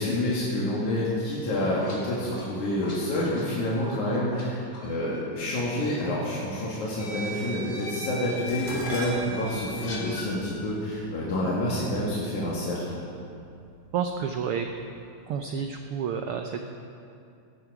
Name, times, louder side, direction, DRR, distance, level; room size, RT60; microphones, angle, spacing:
voice 1, 0.0-12.8, left 1 dB, 80° left, -6 dB, 3.3 m, -28 dB
sound 1, 1.6-4.5 4.7-4.9 6.0-6.1 7.0-10.3, equal, 45° left, 2.7 m, -38 dB
Dishes pots and pans, 8.5-12.8 13.7-14.1 14.5-15.4 15.6-15.7, right 1 dB, 15° right, 2.6 m, -40 dB
voice 2, 13.9-14.7 15.3-16.6, right 7 dB, 90° right, 5 dB, 1.2 m, -30 dB
17.0 x 12.0 x 4.8 m, 2.5 s
omnidirectional pair, 3.3 m